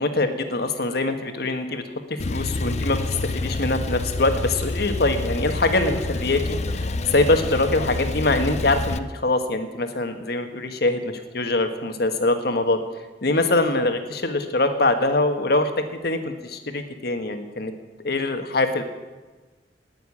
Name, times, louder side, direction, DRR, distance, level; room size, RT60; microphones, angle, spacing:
voice 1, 0.0-1.8 2.3-12.8 13.2-17.7 18.0-18.8, left 2 dB, 65° left, 7 dB, 1.6 m, -23 dB
Male speech man speaking / Car / Idling, 2.2-9.0, left 2 dB, 40° left, 0.6 m, -28 dB
18.5 x 7.0 x 9.8 m, 1.2 s
head